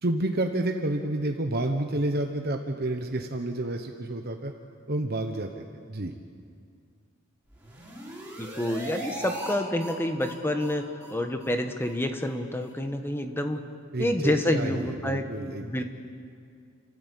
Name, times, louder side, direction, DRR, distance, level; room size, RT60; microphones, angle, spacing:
voice 1, 0.0-4.5 4.9-5.6 5.9-6.1 13.9-15.8, right 1 dB, 45° right, 4 dB, 1.1 m, -29 dB
sound 1, 7.5-9.5 9.8-9.9 10.2-10.3 10.6-10.7 11.0-11.1 11.4-11.5 11.8-11.9 12.2-12.3 12.6-12.7, right 1 dB, 5° right, 4.5 m, -39 dB
voice 2, 8.4-10.8 11.1-13.6 14.0-15.3 15.6-15.8, left 1 dB, 10° left, 6 dB, 1.3 m, -28 dB
29.5 x 13.5 x 8.3 m, 2.3 s
head